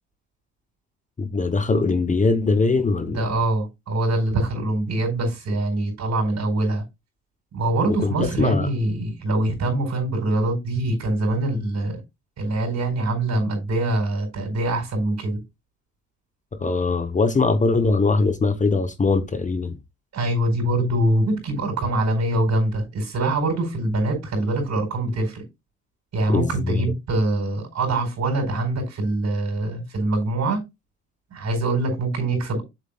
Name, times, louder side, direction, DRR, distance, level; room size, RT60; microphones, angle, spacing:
voice 1, 1.2-3.3 7.9-8.7 16.6-19.8 26.3-26.8, left 3 dB, 25° left, 0.9 m, -21 dB
voice 2, 3.0-6.8 7.5-12.0 12.4-15.4 20.1-25.4 26.1-30.6 31.3-32.6, right 2 dB, 60° right, 4.8 m, -24 dB
7.3 x 7.2 x 2.3 m
cardioid pair, 90°, 30 cm